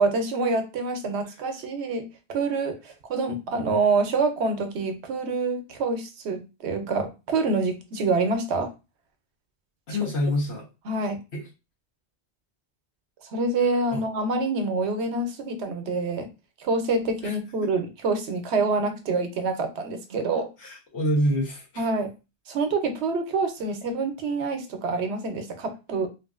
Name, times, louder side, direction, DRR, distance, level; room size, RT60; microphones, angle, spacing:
voice 1, 0.0-8.7 10.9-11.2 13.3-16.3 16.6-20.5 21.8-22.1 22.5-26.1, right 3 dB, 80° right, 6 dB, 0.9 m, -26 dB
voice 2, 9.9-10.7 11.3-11.4 13.9-14.0 17.2-17.3 17.6-17.7 20.6-21.9, equal, 75° left, -3 dB, 1.4 m, -26 dB
3.2 x 2.5 x 2.4 m, 0.28 s
omnidirectional pair, 1.1 m